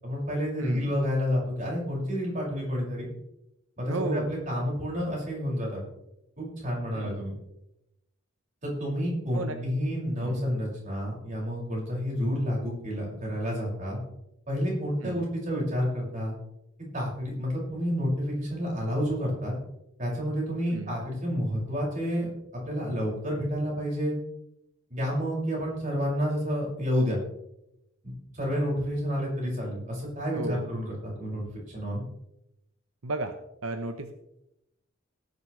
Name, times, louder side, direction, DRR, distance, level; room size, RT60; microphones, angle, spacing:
voice 1, 0.0-3.1 3.8-5.8 6.4-7.3 8.6-14.0 14.5-16.3 16.9-19.5 20.0-22.3 22.5-24.2 24.9-27.2 28.0-32.0, equal, 35° right, -3 dB, 6.1 m, -30 dB
voice 2, 0.6-0.9 3.9-4.4 6.9-7.2 9.3-9.6 10.2-10.4 15.0-15.3 20.7-21.0 30.3-30.7 33.0-33.3 33.6-34.1, right 2 dB, 85° right, 7 dB, 1.0 m, -34 dB
18.0 x 11.0 x 3.3 m, 0.85 s
head